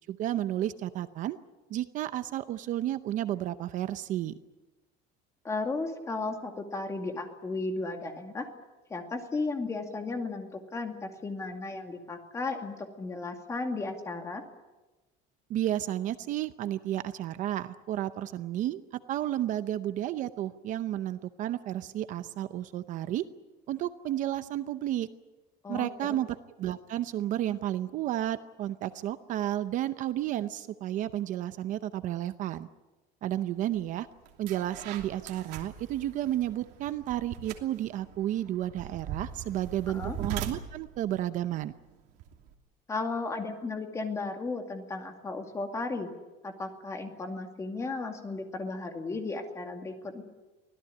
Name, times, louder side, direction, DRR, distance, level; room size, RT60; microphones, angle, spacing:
voice 1, 0.0-1.4 1.7-4.3 15.5-23.2 23.7-25.1 25.7-32.7 33.2-34.1 34.4-41.7, right 12 dB, 45° right, 11 dB, 0.7 m, -32 dB
voice 2, 5.4-8.5 8.9-14.4 25.6-25.9 39.9-40.2 42.9-46.1 46.4-50.2, left 3 dB, 15° left, 4 dB, 2.3 m, -35 dB
sound 1, 33.7-33.9 34.3-42.5, right 9 dB, 70° right, 2.9 m, -41 dB
24.5 x 17.0 x 9.7 m, 1.1 s
cardioid pair, 180°, 18 cm